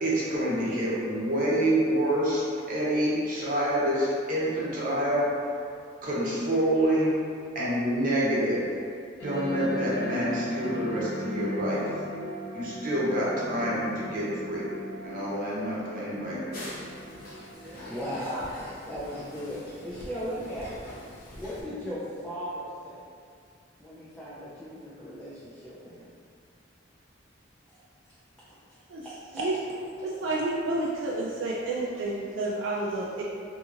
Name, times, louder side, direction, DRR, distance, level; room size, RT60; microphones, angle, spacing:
voice 1, 0.0-5.3 6.0-7.1 7.5-8.6 9.2-11.9 12.5-14.7 15.0-16.6, right 1 dB, 45° right, -7 dB, 0.7 m, -27 dB
sound 1, 9.2-20.2, equal, 75° left, 1.4 m, -38 dB
sound 2, 16.5-21.6, equal, 50° left, 0.6 m, -43 dB
voice 2, 17.9-18.5 18.9-21.0 21.4-23.0 23.8-26.1 28.5-29.4, equal, 5° left, -11 dB, 0.4 m, -37 dB
voice 3, 30.0-33.2, right 2 dB, 85° right, -4 dB, 0.3 m, -30 dB
2.8 x 2.7 x 2.4 m, 2.3 s
head